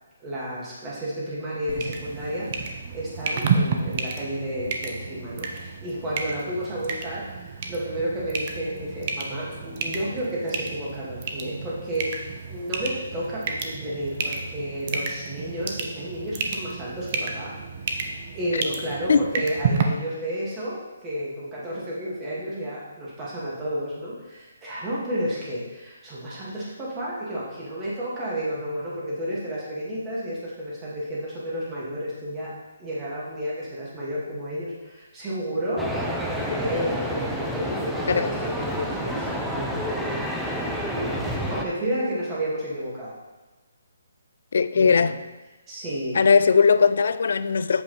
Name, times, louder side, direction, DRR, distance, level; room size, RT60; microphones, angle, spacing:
voice 1, 0.2-17.6 17.9-32.5 32.8-43.1 44.7-45.1 45.7-46.2, equal, 15° right, 2.4 m, -31 dB
sound 1, 1.7-19.8, right 5 dB, 35° right, 0.8 m, -31 dB
sound 2, 35.8-41.6, equal, ahead, 0.6 m, -29 dB
voice 2, 44.5-45.1 46.1-47.8, left 5 dB, 65° left, 0.4 m, -19 dB
8.1 x 6.9 x 3.4 m
hypercardioid pair, 160°, 0 cm